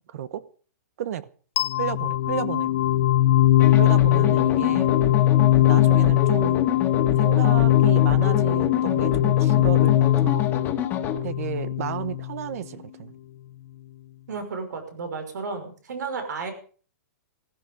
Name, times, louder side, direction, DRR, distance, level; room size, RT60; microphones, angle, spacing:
voice 1, 0.1-0.4 1.0-1.3 1.8-2.7 3.7-4.9 5.7-6.6 7.2-10.5 11.2-13.1, right 10 dB, 55° right, 1.1 m, -32 dB
sound 1, 1.6-12.5, left 14 dB, 50° left, 0.7 m, -20 dB
sound 2, 3.6-11.2, left 8 dB, 20° left, 2.0 m, -29 dB
voice 2, 14.3-16.5, right 4 dB, 80° right, 5.7 m, -33 dB
15.5 x 15.5 x 5.1 m
hypercardioid pair, 160°, 9 cm